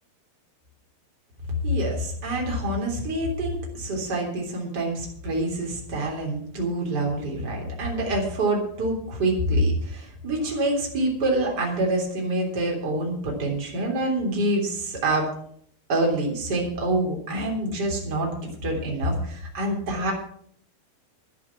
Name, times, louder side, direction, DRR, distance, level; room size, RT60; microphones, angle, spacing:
voice 1, 1.6-15.3 15.9-20.1, right 1 dB, 25° right, -1 dB, 3.7 m, -26 dB
12.0 x 10.5 x 6.2 m, 0.64 s
omnidirectional pair, 4.6 m